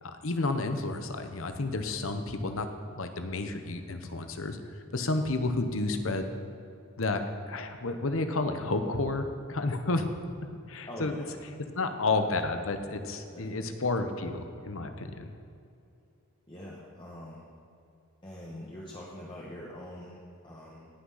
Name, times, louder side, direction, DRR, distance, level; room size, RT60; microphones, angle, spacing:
voice 1, 0.0-2.7 2.9-4.6 4.9-6.3 7.0-10.1 10.7-11.1 11.7-15.3, left 2 dB, 65° left, 7 dB, 1.0 m, -31 dB
voice 2, 10.9-11.3 13.3-13.7 16.5-17.5 18.2-20.9, left 1 dB, 25° left, -5 dB, 1.3 m, -44 dB
18.0 x 6.2 x 5.7 m, 2.6 s
head